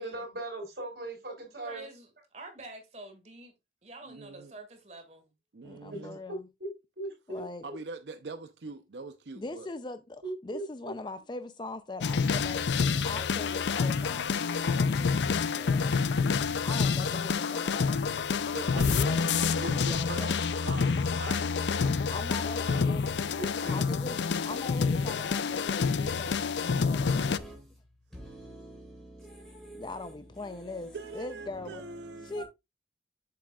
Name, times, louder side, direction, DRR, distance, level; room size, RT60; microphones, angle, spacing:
voice 1, 0.0-1.9 5.9-6.0 6.6-7.7 10.2-10.6 23.3-23.8 32.4-32.5, right 2 dB, 60° right, 3.9 m, -39 dB
voice 2, 1.6-3.5 3.8-5.3, right 2 dB, 40° right, 1.9 m, -47 dB
voice 3, 4.1-4.5 5.5-6.2 7.6-9.7 18.5-19.1 19.5-22.1 22.6-22.9 30.9-32.3, right 3 dB, 80° right, 0.6 m, -43 dB
voice 4, 5.6-6.5 7.3-7.7 9.3-12.7 13.0-16.0 16.6-18.0 18.7-19.3 19.7-20.4 22.1-23.1 23.7-27.1 29.7-31.8 32.2-32.4, left 2 dB, 25° left, 0.5 m, -41 dB
sound 1, 12.0-27.4, left 5 dB, 80° left, 0.5 m, -28 dB
voice 5, 27.0-27.8 28.1-32.4, right 1 dB, ahead, 3.5 m, -48 dB
7.6 x 7.2 x 2.3 m
head